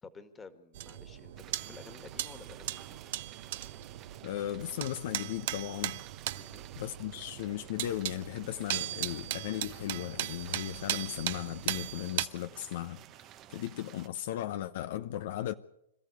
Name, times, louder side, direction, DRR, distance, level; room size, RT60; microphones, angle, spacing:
voice 1, 0.0-3.0 6.4-6.7, left 4 dB, 15° left, 1.9 m, -52 dB
sound 1, 0.7-12.3, right 14 dB, 55° right, 0.9 m, -38 dB
sound 2, 1.4-14.1, right 13 dB, 30° right, 0.9 m, -53 dB
voice 2, 4.2-6.0 6.8-13.0 13.5-15.5, left 12 dB, 55° left, 0.8 m, -36 dB
26.5 x 13.5 x 8.1 m
hypercardioid pair, 130°, 0 cm